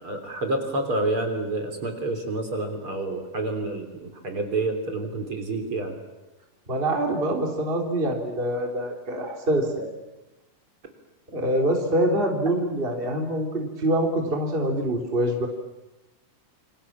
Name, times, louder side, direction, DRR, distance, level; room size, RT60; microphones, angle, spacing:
voice 1, 0.0-6.0, right 2 dB, 40° right, 5 dB, 4.1 m, -28 dB
voice 2, 6.7-9.9 11.3-15.5, right 1 dB, 15° right, 2 dB, 3.3 m, -25 dB
28.5 x 26.5 x 7.4 m, 1.1 s
omnidirectional pair, 3.7 m